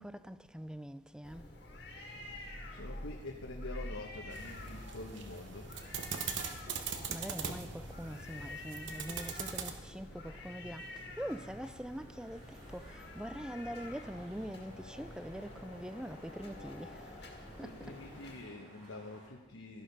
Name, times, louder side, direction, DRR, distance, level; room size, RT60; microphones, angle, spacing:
voice 1, 0.0-1.4 7.1-10.8 11.2-12.4 12.7-17.1 17.6-17.7, equal, 5° right, 0.3 m, -43 dB
sound 1, 1.2-18.3, left 1 dB, 55° left, 1.9 m, -48 dB
voice 2, 2.7-5.9 6.3-6.5 17.2-19.8, left 2 dB, 90° left, 1.2 m, -47 dB
sound 2, 4.3-9.7, right 6 dB, 65° right, 1.1 m, -41 dB
sound 3, 4.4-19.3, equal, 25° right, 4.6 m, -60 dB
13.0 x 11.5 x 5.4 m
head